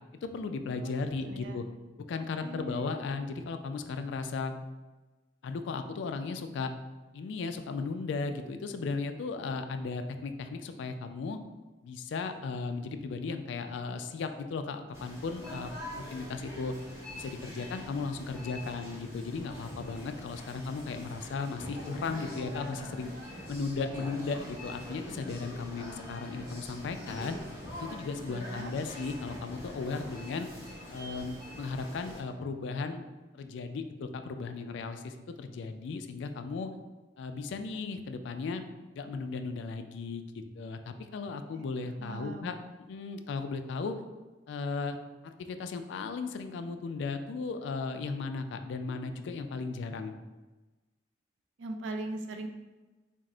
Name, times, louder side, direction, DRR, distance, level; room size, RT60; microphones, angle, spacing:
voice 1, 0.2-1.6 2.1-4.5 5.4-6.7 7.1-11.4 11.8-16.7 17.1-23.1 23.5-27.4 27.7-30.5 30.9-33.1 33.3-36.7 37.2-38.6 38.9-42.5 42.9-44.0 44.5-45.0 45.2-50.1, left 4 dB, 65° left, 8 dB, 0.3 m, -36 dB
voice 2, 1.2-1.6 2.1-3.0 28.3-28.7 41.5-41.6 42.0-42.5 51.6-52.5, right 2 dB, 70° right, 5 dB, 0.4 m, -40 dB
sound 1, 14.9-32.2, left 1 dB, 15° right, 0.8 m, -44 dB
4.3 x 2.0 x 3.7 m, 1.2 s
head